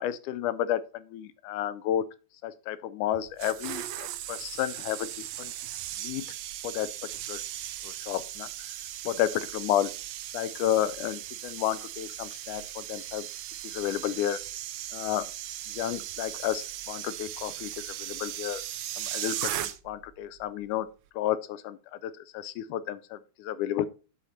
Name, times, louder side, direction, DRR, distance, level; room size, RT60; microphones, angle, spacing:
voice 1, 0.0-2.0 2.4-5.1 5.4-5.5 6.0-6.3 6.6-6.9 7.3-7.4 7.8-8.5 9.1-9.9 10.3-13.3 13.6-14.4 14.9-15.3 15.7-18.6 19.0-20.9 21.2-23.9, left 11 dB, 85° left, 2.1 m, -31 dB
sound 1, 3.1-20.1 20.3-20.6, right 12 dB, 75° right, 1.7 m, -38 dB
9.9 x 4.2 x 4.3 m
omnidirectional pair, 3.5 m